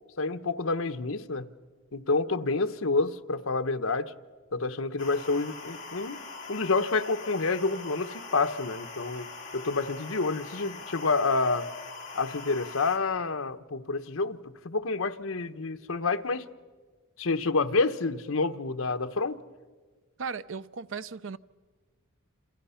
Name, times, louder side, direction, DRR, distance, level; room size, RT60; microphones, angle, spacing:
voice 1, 0.2-1.5 1.9-4.1 4.5-6.2 6.5-9.3 9.5-11.7 12.1-14.4 14.6-16.4 17.2-19.4, left 3 dB, 70° left, 1.1 m, -28 dB
sound 1, 5.0-13.0, left 4 dB, 35° left, 3.9 m, -42 dB
voice 2, 20.2-21.4, right 5 dB, 65° right, 0.7 m, -36 dB
29.0 x 27.0 x 5.8 m
head